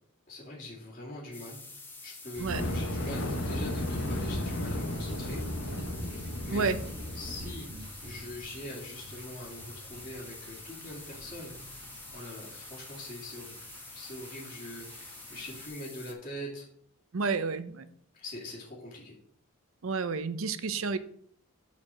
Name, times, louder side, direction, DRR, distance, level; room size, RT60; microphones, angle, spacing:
voice 1, 0.3-1.6 2.0-6.8 7.1-7.7 8.0-13.6 13.9-16.7 18.1-19.1, left 1 dB, 35° left, -9 dB, 2.3 m, -43 dB
sound 1, 1.3-16.1, left 3 dB, 10° left, 0.9 m, -47 dB
sound 2, 2.3-15.7, right 1 dB, 50° right, 1.8 m, -49 dB
Fire, 2.4-7.6, left 1 dB, 70° left, 1.1 m, -34 dB
voice 2, 17.1-17.9 19.8-21.0, right 4 dB, 70° right, 13 dB, 0.6 m, -30 dB
7.2 x 4.7 x 6.1 m, 0.63 s
head